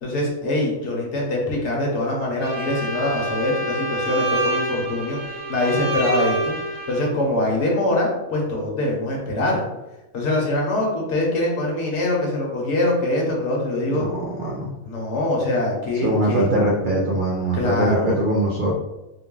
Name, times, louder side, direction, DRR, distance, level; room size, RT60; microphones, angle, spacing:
voice 1, 0.0-6.5 6.9-9.6 10.1-14.0 14.8-16.5 17.5-18.2, left 1 dB, 65° left, -2 dB, 1.2 m, -23 dB
Bowed string instrument, 2.4-7.1, right 2 dB, 75° right, 1.1 m, -27 dB
voice 2, 13.9-14.7 16.0-18.7, right 1 dB, 55° right, -2 dB, 0.6 m, -22 dB
3.8 x 2.2 x 3.7 m, 0.99 s
omnidirectional pair, 1.3 m